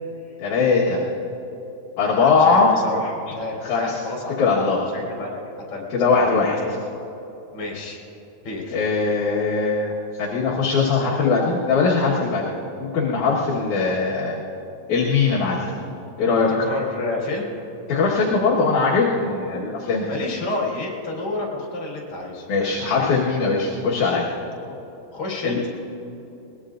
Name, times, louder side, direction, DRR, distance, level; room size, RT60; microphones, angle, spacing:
voice 1, 0.4-1.0 2.0-2.7 3.6-4.0 4.4-4.8 5.9-6.6 8.7-12.4 12.9-14.4 14.9-15.7 16.2-16.5 17.9-20.0 22.5-24.3 25.4-25.6, left 4 dB, 60° left, -5 dB, 2.5 m, -20 dB
voice 2, 2.2-4.5 4.9-5.4 5.7-5.8 6.1-6.4 7.5-8.0 8.4-8.8 16.6-17.5 20.1-23.1 24.6-24.8 25.1-25.6, left 2 dB, 35° left, -3 dB, 4.5 m, -30 dB
21.5 x 20.5 x 2.5 m, 3.0 s
omnidirectional pair, 4.6 m